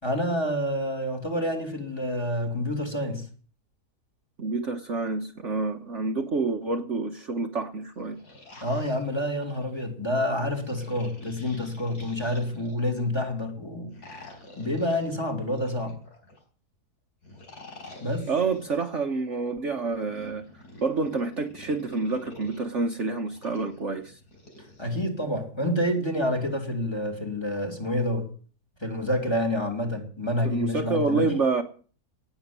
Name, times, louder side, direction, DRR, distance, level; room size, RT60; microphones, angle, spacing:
voice 1, 0.0-3.2 8.6-13.9 14.6-16.0 18.0-18.3 24.8-28.3 28.8-31.3, left 1 dB, 15° left, 3.3 m, -28 dB
voice 2, 4.4-8.2 18.3-24.2 30.4-31.6, right 3 dB, 50° right, 1.4 m, -28 dB
sound 1, 7.9-9.8 10.6-13.0 13.9-16.4 17.2-18.8 19.8-22.6 23.3-25.0, left 1 dB, 70° left, 5.1 m, -48 dB
18.5 x 7.2 x 9.7 m
omnidirectional pair, 1.7 m